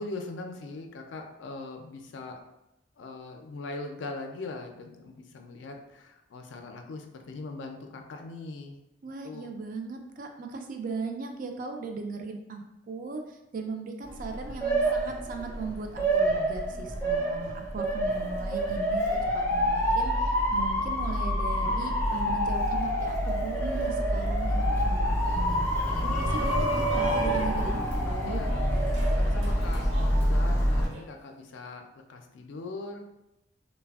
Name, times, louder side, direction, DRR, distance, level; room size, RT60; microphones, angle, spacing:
voice 1, 0.0-2.4 3.0-8.8 9.2-9.5 28.3-28.5 29.2-33.0, left 3 dB, 75° left, 4 dB, 0.4 m, -40 dB
voice 2, 9.0-19.1 19.5-25.6 26.0-28.4, right 4 dB, 45° right, 4 dB, 0.3 m, -38 dB
Motor vehicle (road) / Siren, 14.1-30.9, equal, 15° left, 0.4 m, -27 dB
Shout, 25.9-31.0, right 3 dB, 85° right, 1.1 m, -34 dB
3.2 x 2.1 x 2.3 m, 0.91 s
head